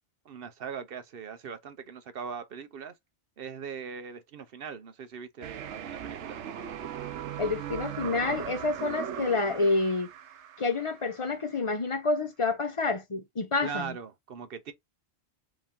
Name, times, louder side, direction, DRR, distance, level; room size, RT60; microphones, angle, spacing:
voice 1, 0.3-2.9 3.4-6.4 13.6-14.7, right 6 dB, 60° right, 0.9 m, -40 dB
sound 1, 5.4-11.3, right 10 dB, 90° right, 1.0 m, -39 dB
voice 2, 7.4-10.1 10.6-13.9, left 3 dB, 35° left, 0.6 m, -28 dB
4.9 x 2.7 x 3.6 m
omnidirectional pair, 1.1 m